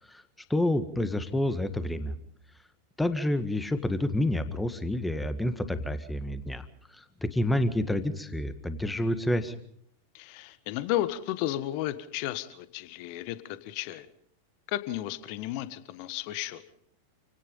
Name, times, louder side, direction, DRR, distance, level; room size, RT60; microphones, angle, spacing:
voice 1, 0.5-2.1 3.0-6.7 6.9-9.5, left 1 dB, 5° left, 11 dB, 1.8 m, -28 dB
voice 2, 10.1-14.1 14.7-16.6, left 14 dB, 45° left, 13 dB, 1.4 m, -33 dB
28.0 x 18.0 x 5.5 m, 0.66 s
figure-of-eight pair, 90°, 0 cm